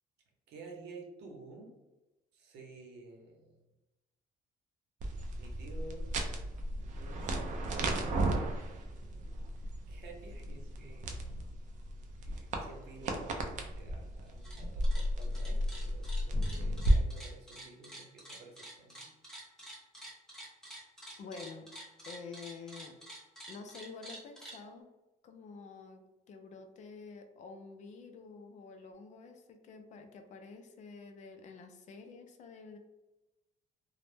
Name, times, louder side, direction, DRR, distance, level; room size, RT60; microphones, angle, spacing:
voice 1, 0.5-1.7 2.3-3.6 5.4-6.1 7.0-8.5 9.5-11.3 12.2-19.1, right 3 dB, 90° right, 0 dB, 0.7 m, -52 dB
sound 1, 5.0-16.9, right 1 dB, 50° right, 0.4 m, -34 dB
sound 2, 14.3-14.6 14.8-24.6, right 1 dB, 5° left, 0.6 m, -48 dB
voice 2, 21.2-21.7 22.1-22.9 23.5-24.9 25.2-26.0 26.3-32.8, left 4 dB, 45° left, 5 dB, 0.4 m, -48 dB
2.0 x 2.0 x 3.1 m, 1.0 s
cardioid pair, 155°, 17 cm